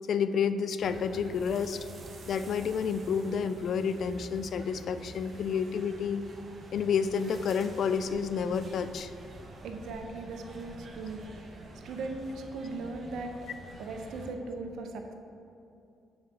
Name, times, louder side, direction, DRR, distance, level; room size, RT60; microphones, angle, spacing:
voice 1, 0.1-1.8 2.3-6.2 6.7-9.1, left 6 dB, 65° left, 11 dB, 0.3 m, -30 dB
sound 1, 0.8-14.3, right 2 dB, 45° right, 1.1 m, -47 dB
voice 2, 9.6-11.2 11.8-13.3 13.8-15.1, right 3 dB, 75° right, 4 dB, 0.6 m, -38 dB
7.3 x 3.7 x 6.0 m, 2.7 s
supercardioid pair, 65°, 0 cm